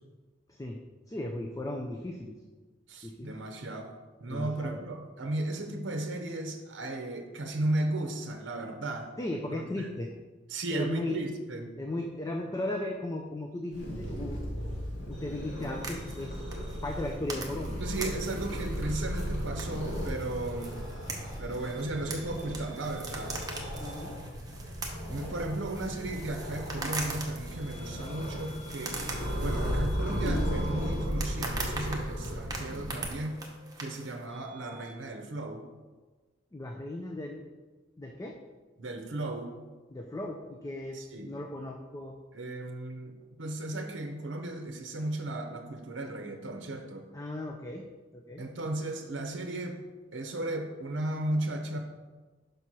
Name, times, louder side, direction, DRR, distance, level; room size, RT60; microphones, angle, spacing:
voice 1, 0.5-0.8 1.1-2.3 3.0-3.3 4.3-4.8 9.2-10.1 10.7-11.2 11.8-14.4 15.1-16.4 16.8-17.8 23.8-24.1 36.5-37.4 38.0-38.4 39.9-42.2 47.1-47.8 48.1-48.4, left 1 dB, 20° left, 2 dB, 0.4 m, -36 dB
voice 2, 2.9-3.9 4.2-9.1 9.5-9.9 10.5-11.7 17.8-20.8 21.4-23.4 25.1-29.1 29.4-33.4 33.8-35.6 38.8-39.5 40.9-41.3 42.3-47.0 48.4-49.8 50.1-51.8, right 1 dB, 65° right, 4 dB, 0.7 m, -35 dB
Purr, 13.7-33.0, equal, 70° left, 2.1 m, -35 dB
sound 1, 15.1-18.0 18.2-19.4 20.6-34.9, right 1 dB, ahead, 1.2 m, -53 dB
sound 2, 15.6-34.3, right 3 dB, 20° right, 0.8 m, -42 dB
5.3 x 4.2 x 6.1 m, 1.3 s
head